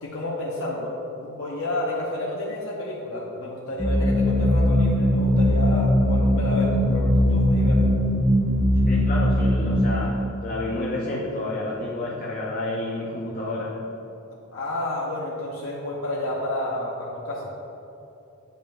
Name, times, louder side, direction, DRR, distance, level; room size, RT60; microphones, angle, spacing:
voice 1, 0.0-7.9 14.5-17.5, left 1 dB, 80° left, -5 dB, 0.8 m, -30 dB
sound 1, 3.8-9.8, left 1 dB, ahead, 0.5 m, -20 dB
voice 2, 8.9-13.8, left 2 dB, 45° left, -4 dB, 0.6 m, -30 dB
8.9 x 5.4 x 2.3 m, 3.0 s
head